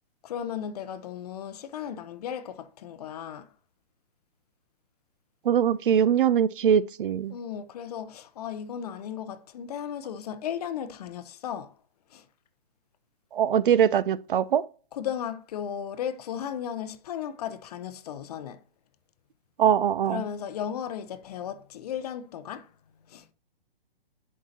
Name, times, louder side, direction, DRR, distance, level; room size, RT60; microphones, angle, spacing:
voice 1, 0.2-3.5 7.3-11.7 12.1-12.2 14.9-18.6 20.1-22.7 23.1-23.2, left 9 dB, 40° left, 0.6 m, -35 dB
voice 2, 5.5-7.3 13.3-14.6 19.6-20.2, right 8 dB, 60° right, 0.5 m, -22 dB
11.0 x 4.7 x 2.8 m
figure-of-eight pair, 130°, 30 cm